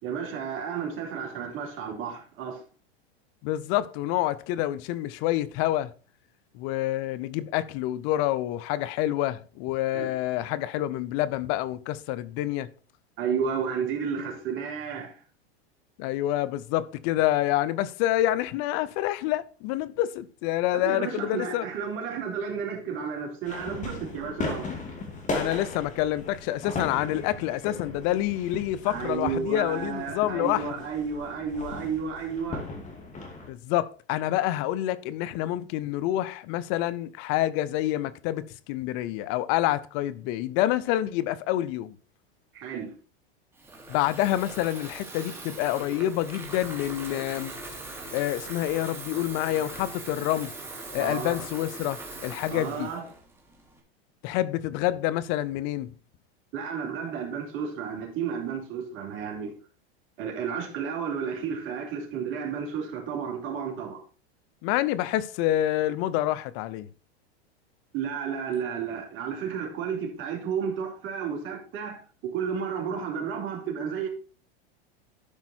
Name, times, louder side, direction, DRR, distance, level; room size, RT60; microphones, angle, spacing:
voice 1, 0.0-2.6 9.9-10.1 13.2-15.2 20.7-24.7 28.8-32.7 42.5-42.9 51.0-51.3 52.5-53.0 56.5-59.5 60.2-64.0 67.9-74.1, right 6 dB, 40° right, 3.6 m, -32 dB
voice 2, 3.4-5.9 6.5-12.7 16.0-21.7 25.3-30.6 33.5-42.0 43.9-47.5 48.1-50.5 50.9-52.9 54.2-55.9 64.6-66.9, left 14 dB, 45° left, 0.7 m, -27 dB
sound 1, 23.4-33.5, left 3 dB, 25° left, 2.7 m, -37 dB
Water tap faucet / Fill (with liquid), 43.5-53.8, right 2 dB, 5° right, 2.3 m, -41 dB
12.0 x 5.3 x 4.4 m
supercardioid pair, 125°, 32 cm